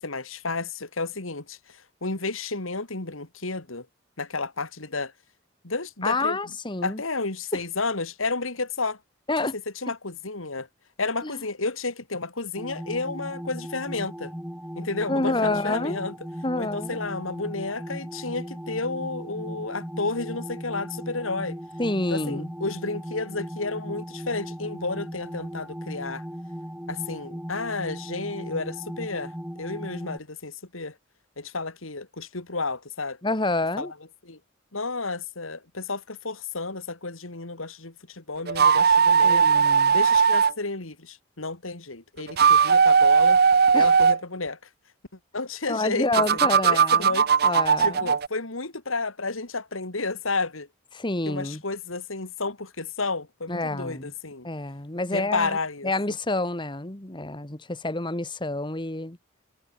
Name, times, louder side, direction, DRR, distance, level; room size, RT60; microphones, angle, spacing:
voice 1, 0.0-3.9 4.2-5.1 5.6-6.4 6.8-9.0 9.4-9.5 9.8-10.7 11.0-14.3 14.8-16.1 16.6-21.6 22.1-26.2 26.9-30.9 31.4-33.2 33.8-33.9 34.2-34.4 34.7-39.5 39.9-43.4 43.7-44.6 45.3-46.2 46.6-47.5 47.8-50.7 51.3-54.5 55.1-55.9, left 3 dB, 90° left, 2.9 m, -31 dB
voice 2, 6.0-7.0 7.5-7.6 9.3-9.5 11.2-11.4 15.1-16.0 16.4-17.0 21.8-22.5 33.2-33.9 39.2-40.0 43.7-43.9 45.7-48.1 50.9-51.6 53.5-54.1 54.4-55.6 55.8-59.2, left 2 dB, 25° left, 1.7 m, -28 dB
sound 1, 12.6-30.2, equal, 5° right, 2.7 m, -37 dB
sound 2, 38.5-40.5 42.2-44.2 46.1-48.3, right 6 dB, 50° right, 0.6 m, -18 dB
head